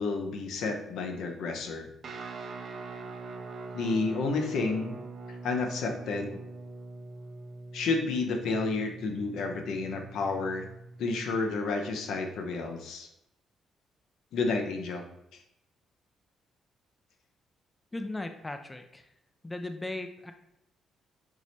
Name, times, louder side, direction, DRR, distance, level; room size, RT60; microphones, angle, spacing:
voice 1, 0.0-1.9 3.7-5.0 5.4-6.4 7.7-10.7 11.0-13.1 14.3-15.0, left 3 dB, 80° left, 3 dB, 0.7 m, -30 dB
Guitar, 2.0-11.4, right 3 dB, 55° right, 0.6 m, -43 dB
voice 2, 17.9-19.1 19.4-20.3, left 2 dB, 15° left, 7 dB, 0.4 m, -37 dB
4.6 x 2.1 x 4.0 m, 0.82 s
cardioid pair, 90°, 0 cm